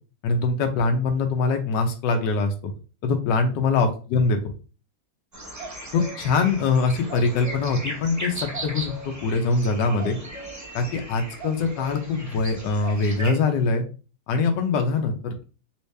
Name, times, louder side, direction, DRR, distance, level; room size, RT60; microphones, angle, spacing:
voice 1, 0.2-2.7 3.0-4.4 5.9-10.2 10.7-13.8 14.3-15.5, left 4 dB, 75° left, 5 dB, 1.3 m, -23 dB
sound 1, 5.3-13.3, right 1 dB, 20° right, 0.4 m, -37 dB
3.1 x 2.9 x 3.2 m, 0.35 s
omnidirectional pair, 1.9 m